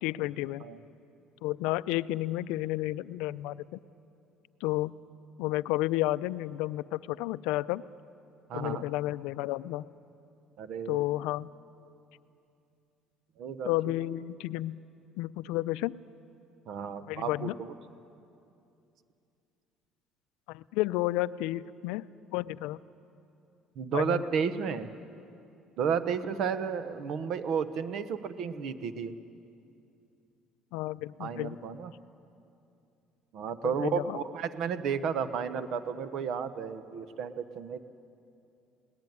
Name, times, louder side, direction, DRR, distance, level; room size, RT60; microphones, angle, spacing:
voice 1, 0.0-0.6 1.4-3.8 4.6-4.9 5.4-7.8 8.5-9.9 10.9-11.5 13.6-14.8 15.2-15.9 17.1-17.6 20.5-22.1 22.3-22.8 23.9-24.2 30.7-31.6 33.6-34.2, left 17 dB, 85° left, 16 dB, 0.4 m, -31 dB
voice 2, 8.5-8.8 10.6-11.1 13.4-13.7 16.7-17.7 23.8-24.9 25.8-29.1 31.2-31.9 33.3-37.8, right 6 dB, 50° right, 12 dB, 0.9 m, -32 dB
21.5 x 18.5 x 9.4 m, 2.7 s
cardioid pair, 170°, 0 cm